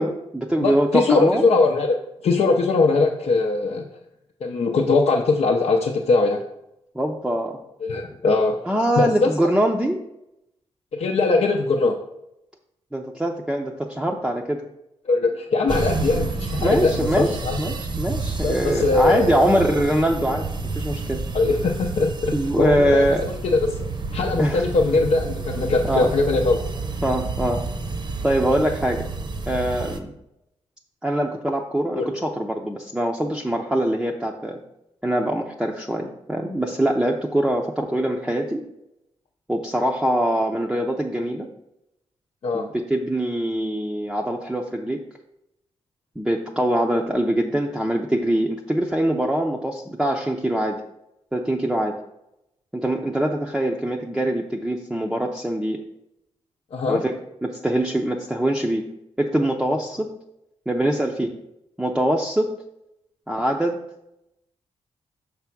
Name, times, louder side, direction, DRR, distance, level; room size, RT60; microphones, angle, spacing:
voice 1, 0.0-1.4 6.9-7.6 8.7-10.0 12.9-14.6 16.6-17.3 17.6-20.4 20.7-21.2 22.3-23.2 24.4-24.6 25.8-26.1 27.0-27.6 28.2-29.1 29.5-30.1 31.0-34.6 35.0-38.6 39.5-41.5 42.5-45.0 46.2-50.8 51.3-52.0 52.7-55.8 56.9-57.1 57.4-58.9 59.2-60.1 60.7-61.3 61.8-62.5 63.3-63.8, right 1 dB, 5° right, 0 dB, 0.6 m, -23 dB
voice 2, 0.6-3.8 4.4-6.4 7.8-8.6 9.0-9.3 10.9-12.0 15.1-17.6 18.4-19.5 21.3-23.9 24.1-26.6 31.9-32.1 42.4-42.7 56.7-57.0, left 3 dB, 70° left, 0 dB, 0.6 m, -21 dB
sound 1, 15.7-30.0, right 3 dB, 45° right, 0.8 m, -29 dB
5.9 x 3.5 x 5.9 m, 0.85 s
cardioid pair, 80°, 11 cm